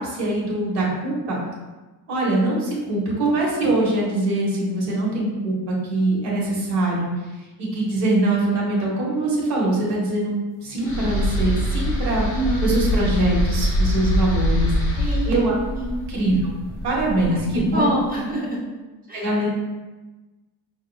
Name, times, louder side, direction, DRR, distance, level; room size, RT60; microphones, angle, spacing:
voice 1, 0.0-1.4 2.1-7.1 7.6-12.3 12.6-14.7 15.2-15.5 16.1-16.5 16.8-17.9 19.1-19.5, right 2 dB, 60° right, -4 dB, 1.2 m, -23 dB
sound 1, 10.8-18.0, left 1 dB, 30° left, 0.9 m, -24 dB
voice 2, 12.3-12.7 15.0-15.5 15.7-16.0 17.3-18.6 19.1-19.3, right 1 dB, 25° right, -4 dB, 0.3 m, -26 dB
4.8 x 2.7 x 2.3 m, 1.2 s
cardioid pair, 170°, 43 cm